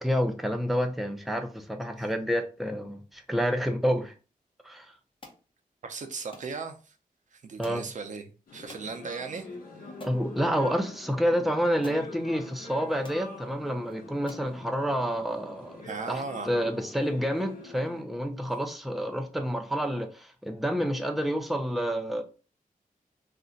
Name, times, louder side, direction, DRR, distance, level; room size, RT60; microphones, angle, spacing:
voice 1, 0.0-4.1 4.6-4.9 7.6-7.9 10.0-15.8 16.1-22.2, equal, ahead, 0.4 m, -29 dB
sound 1, 5.2-5.4 6.3-6.5 7.6-7.9 8.7-8.9 9.5-9.6 10.0-10.2 11.3-11.4 11.8-12.1 12.7-12.8 13.0-13.2 13.8-13.9 14.3-14.5, left 1 dB, 35° left, 0.7 m, -48 dB
voice 2, 5.8-6.9 7.3-9.5 15.8-16.5, right 4 dB, 60° right, 0.5 m, -37 dB
sound 2, 8.5-18.0, left 2 dB, 80° left, 0.9 m, -45 dB
2.5 x 2.1 x 3.7 m
wide cardioid pair, 110°, 14 cm